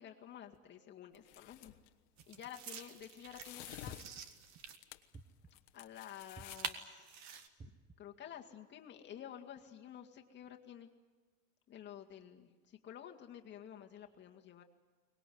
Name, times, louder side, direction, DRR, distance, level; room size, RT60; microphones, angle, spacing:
voice 1, 0.0-1.8 2.3-4.0 5.7-7.3 7.6-10.9 11.7-14.6, left 10 dB, 25° left, 3 dB, 2.0 m, -51 dB
sound 1, 0.6-0.7 2.2-4.8 6.5-7.5, right 7 dB, 40° right, 1.8 m, -47 dB
sound 2, 1.1-1.9 3.0-5.2 5.5-6.6, left 17 dB, 50° left, 1.4 m, -52 dB
sound 3, 3.9-4.5 5.1-5.8 6.4-7.0 7.6-8.2, right 3 dB, 10° right, 0.9 m, -56 dB
23.5 x 20.0 x 9.4 m, 1.3 s
supercardioid pair, 140°, 44 cm